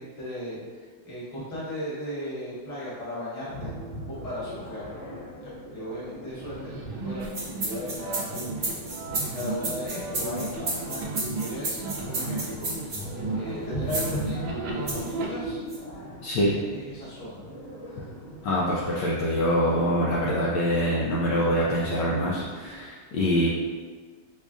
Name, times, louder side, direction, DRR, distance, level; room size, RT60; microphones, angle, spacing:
voice 1, 0.0-3.7 4.1-4.9 5.4-7.2 7.5-8.4 9.1-11.8 12.1-12.7 13.3-15.6 16.4-17.4, left 1 dB, 25° left, -9 dB, 0.9 m, -36 dB
sound 1, 3.5-22.9, right 1 dB, 55° left, 1.4 m, -40 dB
sound 2, 6.3-15.3, right 2 dB, 80° right, 1.4 m, -35 dB
sound 3, 7.2-13.0 13.9-14.2 14.9-15.1 15.7-15.8, right 2 dB, 50° right, 0.8 m, -32 dB
voice 2, 18.4-23.5, equal, 75° left, -5 dB, 1.0 m, -24 dB
5.0 x 2.4 x 2.4 m, 1.5 s
omnidirectional pair, 2.2 m